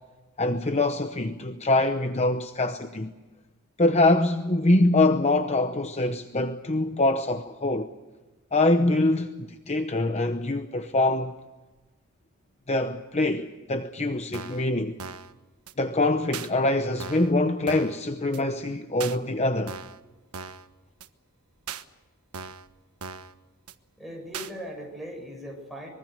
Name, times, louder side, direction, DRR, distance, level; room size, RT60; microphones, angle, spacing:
voice 1, 0.4-3.1 3.8-7.9 8.5-11.4 12.7-15.0 15.8-19.8, left 2 dB, 30° left, 0.9 m, -24 dB
sound 1, 14.3-14.7 15.0-15.3 15.7-15.8 16.3-16.5 17.0-17.3 17.7-18.0 18.3-18.4 19.0-19.2 19.7-20.0 20.3-20.7 21.0-21.1 21.7-21.8 22.3-22.7 23.0-23.3 23.7-23.8 24.3-24.5, right 6 dB, 90° right, 1.3 m, -38 dB
voice 2, 24.0-25.9, equal, ahead, 7.7 m, -39 dB
25.0 x 23.0 x 6.6 m
head